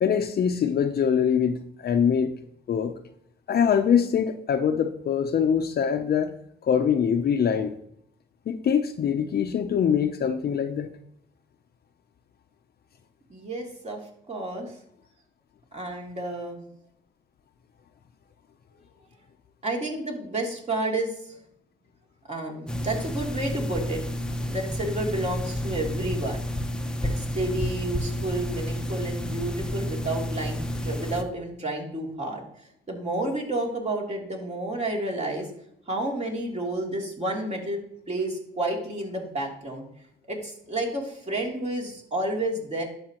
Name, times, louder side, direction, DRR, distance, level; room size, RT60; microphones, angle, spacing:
voice 1, 0.0-2.3 2.7-2.9 3.5-6.3 6.6-7.7 8.5-10.9, left 7 dB, 50° left, 6 dB, 0.7 m, -23 dB
voice 2, 13.3-14.0 14.3-14.8 15.7-16.6 19.6-21.4 22.3-26.5 27.0-35.5 35.9-37.8 38.1-39.8 40.3-42.8, right 2 dB, 35° right, -1 dB, 3.0 m, -31 dB
sound 1, 22.7-31.2, equal, 5° left, 0.9 m, -30 dB
11.0 x 7.3 x 3.0 m, 0.73 s
cardioid pair, 90°, 20 cm